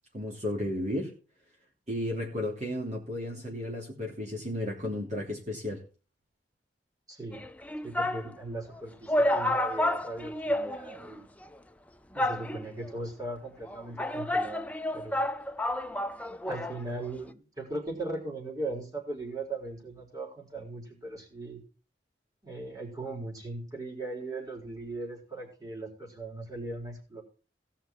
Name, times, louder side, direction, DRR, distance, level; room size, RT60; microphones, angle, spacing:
voice 1, 0.1-1.1 1.9-5.8, left 1 dB, 40° right, -3 dB, 3.3 m, -33 dB
voice 2, 7.1-7.4 7.8-11.2 12.1-14.7 14.9-15.2 16.4-21.6 22.4-27.2, right 2 dB, 20° right, -1 dB, 4.1 m, -38 dB
sound 1, 7.3-8.3 8.7-8.8 9.1-11.1 11.4-11.5 12.2-12.9 13.6-16.8 17.1-17.2, left 1 dB, 10° left, 0.5 m, -30 dB
17.0 x 5.8 x 6.0 m, 0.36 s
head